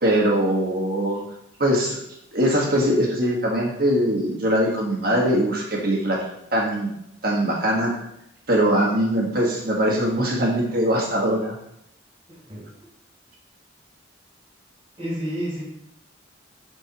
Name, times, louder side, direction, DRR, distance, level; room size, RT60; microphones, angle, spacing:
voice 1, 0.0-1.2 1.6-2.0 2.3-6.2 6.5-6.9 7.2-7.9 8.5-11.6, right 1 dB, 50° right, -1 dB, 1.7 m, -21 dB
voice 2, 12.3-12.6 15.0-15.6, equal, 25° right, -4 dB, 3.2 m, -30 dB
11.5 x 4.5 x 3.1 m, 0.78 s
head